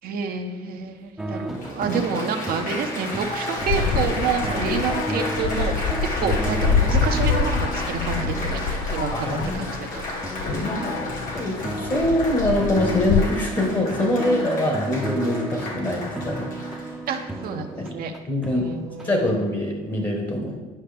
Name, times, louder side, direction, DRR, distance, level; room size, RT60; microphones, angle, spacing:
voice 1, 0.0-5.9 6.2-10.1 17.1-18.1 18.5-19.2, right 6 dB, 60° right, 4 dB, 0.7 m, -28 dB
Applause, 0.8-0.9 1.5-17.5 18.2-18.5, left 2 dB, 55° left, 1.8 m, -33 dB
sound 1, 1.2-19.3, right 1 dB, ahead, 0.7 m, -33 dB
sound 2, 3.6-13.3, left 5 dB, 70° left, 0.5 m, -26 dB
voice 2, 9.1-9.7 10.4-11.6 11.8-16.5 17.8-17.9 18.3-18.7 19.0-20.6, left 1 dB, 25° left, 1 dB, 1.3 m, -24 dB
10.5 x 5.5 x 3.4 m, 1.3 s
cardioid pair, 110°, 17 cm